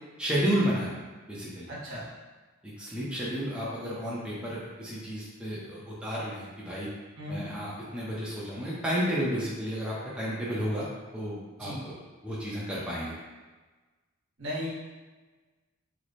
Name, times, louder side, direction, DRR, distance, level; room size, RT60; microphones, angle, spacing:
voice 1, 0.2-0.9 1.3-1.7 2.6-6.9 7.3-10.9 11.1-11.9 12.2-13.1, equal, 5° right, -8 dB, 0.6 m, -32 dB
voice 2, 1.7-2.0 7.2-7.4 11.6-11.8 14.4-14.7, equal, 65° right, -6 dB, 1.1 m, -36 dB
3.1 x 2.1 x 4.0 m, 1.3 s
head